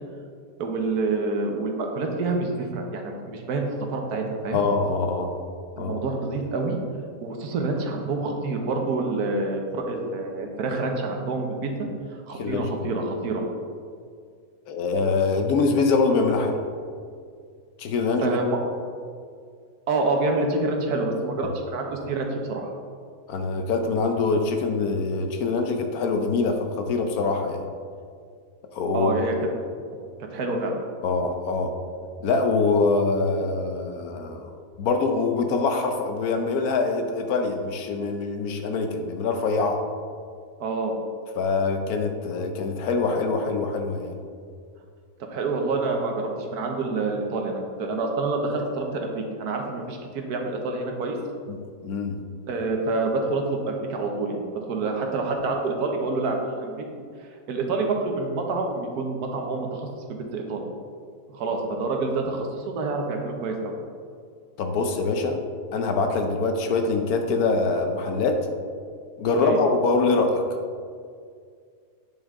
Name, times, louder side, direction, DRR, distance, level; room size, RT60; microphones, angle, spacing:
voice 1, 0.6-4.6 5.8-6.8 7.2-11.7 12.3-13.4 18.2-18.6 19.9-22.7 28.9-29.3 29.9-30.0 30.3-30.7 40.6-40.9 45.3-51.2 52.5-56.8 57.5-60.6 61.3-63.7 69.4-69.6, right 3 dB, 85° right, 2 dB, 1.5 m, -27 dB
voice 2, 4.5-5.3 5.8-6.0 12.3-12.8 14.7-16.5 17.8-18.4 21.4-21.5 23.3-27.6 28.7-29.2 31.0-31.7 32.2-34.5 34.8-39.8 41.4-44.1 51.5-51.6 51.8-52.2 64.6-65.4 65.7-68.4 69.2-70.4, left 4 dB, 75° left, 5 dB, 1.2 m, -24 dB
9.0 x 5.4 x 3.6 m, 2.2 s
omnidirectional pair, 1.6 m